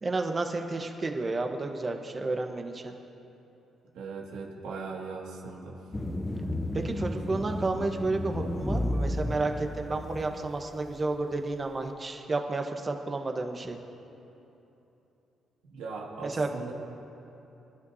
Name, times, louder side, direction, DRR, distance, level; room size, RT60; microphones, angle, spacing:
voice 1, 0.0-2.9 6.7-13.8 16.2-16.5, right 3 dB, 30° right, 4 dB, 1.2 m, -31 dB
voice 2, 3.9-5.8 7.3-7.5 15.7-16.7, right 4 dB, 90° right, -2 dB, 2.1 m, -39 dB
sound 1, 5.9-10.5, left 1 dB, 15° left, 0.9 m, -32 dB
26.0 x 11.5 x 2.8 m, 3.0 s
cardioid pair, 90°, 0 cm